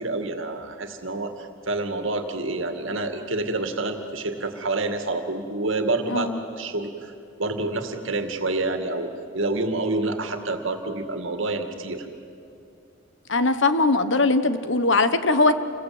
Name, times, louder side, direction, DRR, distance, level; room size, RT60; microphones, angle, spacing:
voice 1, 0.0-7.1 7.4-12.1, right 2 dB, 70° right, 6 dB, 2.2 m, -28 dB
voice 2, 6.1-6.4 13.3-15.5, left 3 dB, 60° left, 11 dB, 1.2 m, -20 dB
28.0 x 22.0 x 8.9 m, 2.5 s
head